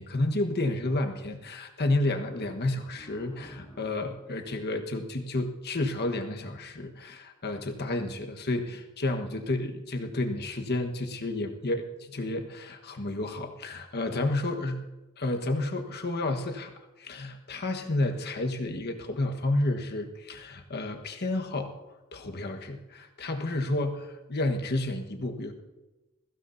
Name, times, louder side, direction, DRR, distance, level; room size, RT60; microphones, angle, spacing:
voice 1, 0.0-14.8 15.2-16.7 17.0-21.7 22.1-25.5, left 2 dB, 50° left, 4 dB, 1.3 m, -31 dB
sound 1, 2.9-6.1, equal, 15° left, 4.2 m, -53 dB
21.0 x 15.5 x 2.7 m, 1.1 s
head